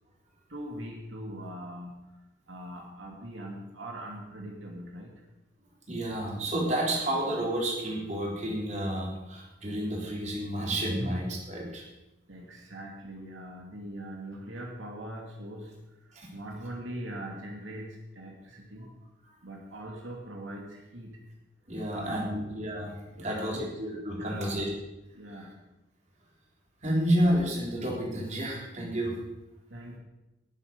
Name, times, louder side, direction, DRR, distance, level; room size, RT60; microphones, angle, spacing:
voice 1, 0.5-2.0 2.5-5.1 11.0-11.1 12.3-15.7 16.3-18.9 19.4-21.2 21.9-22.5 23.1-23.7 24.1-24.6 25.1-25.5 29.7-30.0, right 1 dB, 85° right, 0 dB, 2.5 m, -41 dB
voice 2, 5.9-11.8 16.1-16.3 19.3-19.4 21.7-24.7 26.8-29.2, right 1 dB, 40° right, -2 dB, 3.8 m, -30 dB
18.5 x 8.0 x 5.4 m, 0.98 s
head